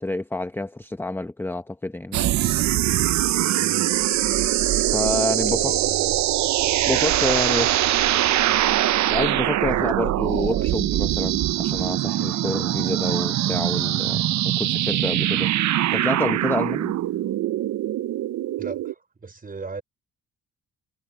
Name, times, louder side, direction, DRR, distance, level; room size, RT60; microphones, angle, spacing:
voice 1, 0.0-2.2 4.9-5.7 6.9-7.8 9.1-15.5 15.9-16.9, left 2 dB, 5° left, 0.8 m, -28 dB
sound 1, 2.1-18.9, right 13 dB, 65° right, 0.7 m, -22 dB
voice 2, 3.3-3.9 5.5-6.2 9.7-10.1 18.6-19.8, right 4 dB, 30° right, 4.7 m, -36 dB
cardioid pair, 90°, 30 cm